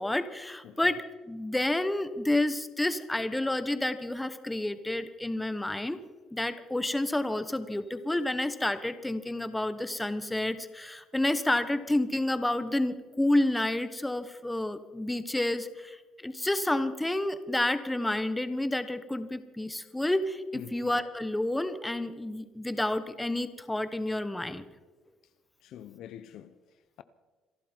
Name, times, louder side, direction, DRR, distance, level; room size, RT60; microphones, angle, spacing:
voice 1, 0.0-6.0 6.3-24.6, left 1 dB, 10° left, 1.1 m, -30 dB
voice 2, 0.6-1.0 20.5-20.9 25.6-26.6, left 10 dB, 70° left, 0.7 m, -45 dB
26.5 x 11.5 x 4.5 m
cardioid pair, 105°, 0 cm